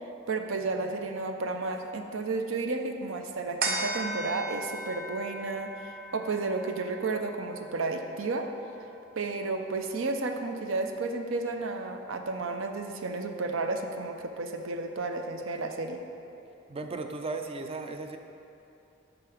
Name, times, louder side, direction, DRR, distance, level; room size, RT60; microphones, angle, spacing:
voice 1, 0.3-8.5 9.2-16.0, right 3 dB, 85° right, 5 dB, 0.6 m, -32 dB
sound 1, 3.6-10.4 10.8-10.9, right 2 dB, 50° right, 0.8 m, -38 dB
voice 2, 16.7-18.2, right 3 dB, 30° right, 6 dB, 0.4 m, -36 dB
10.5 x 3.7 x 5.0 m, 2.8 s
head